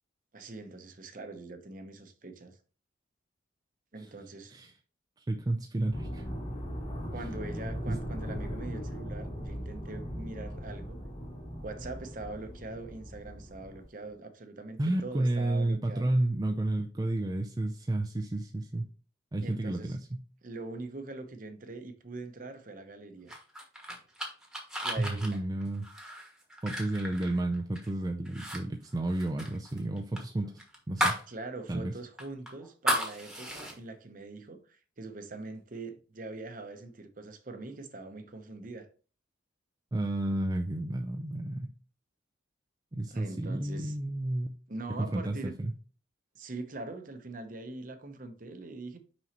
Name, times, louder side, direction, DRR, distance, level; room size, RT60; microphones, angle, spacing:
voice 1, 0.3-2.6 3.9-4.6 7.1-11.0 11.6-16.1 19.4-20.0 20.4-23.4 24.8-25.4 31.3-38.9 43.1-44.0 44.7-45.6 46.3-49.0, right 2 dB, 45° right, 0.8 m, -43 dB
voice 2, 5.3-6.3 7.9-8.0 14.8-18.8 19.3-20.2 25.0-25.9 26.6-31.2 31.7-31.9 39.9-41.7 42.9-44.5 45.0-45.7, right 1 dB, 20° right, 0.4 m, -31 dB
sound 1, 5.9-14.1, equal, 30° left, 2.4 m, -39 dB
sound 2, 23.3-27.9 28.2-28.6 28.8-31.3 31.6-31.7 32.2-33.7, equal, 5° right, 1.2 m, -34 dB
5.9 x 5.4 x 2.9 m
head